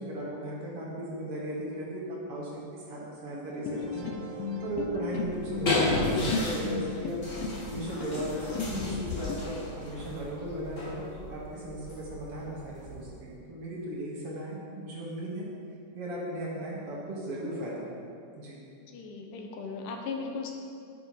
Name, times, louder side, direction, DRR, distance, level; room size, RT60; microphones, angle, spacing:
voice 1, 0.0-15.5 15.9-18.0 18.4-18.6, right 1 dB, 55° right, -4 dB, 1.8 m, -37 dB
sound 1, 3.3-6.1, right 6 dB, 90° right, 2.6 m, -46 dB
sound 2, 3.7-9.4, left 5 dB, 90° left, 2.4 m, -35 dB
sound 3, 5.2-13.3, left 2 dB, 30° left, 1.5 m, -34 dB
voice 2, 18.8-20.5, left 4 dB, 75° left, 2 dB, 2.3 m, -37 dB
9.5 x 7.1 x 4.7 m, 2.4 s
omnidirectional pair, 4.0 m